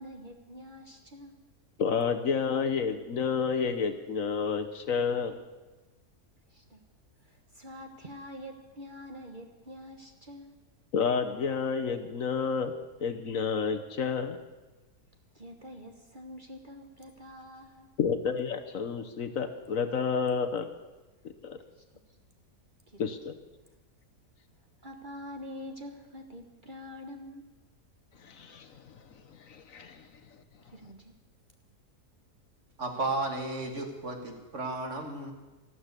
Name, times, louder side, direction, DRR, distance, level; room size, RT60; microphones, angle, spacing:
voice 1, 0.0-1.3 6.5-6.8 7.2-10.5 15.3-17.9 21.7-21.8 22.9-23.1 24.8-27.5 30.6-31.1, left 1 dB, 35° right, 4 dB, 1.3 m, -46 dB
voice 2, 1.8-5.3 10.9-12.7 13.0-14.4 18.0-20.7 21.4-21.6 23.0-23.4 28.2-29.0 29.5-30.1, left 6 dB, 60° left, 8 dB, 1.3 m, -30 dB
voice 3, 32.8-35.3, right 2 dB, 50° right, 3 dB, 2.2 m, -33 dB
13.0 x 12.5 x 8.2 m, 1.2 s
omnidirectional pair, 1.7 m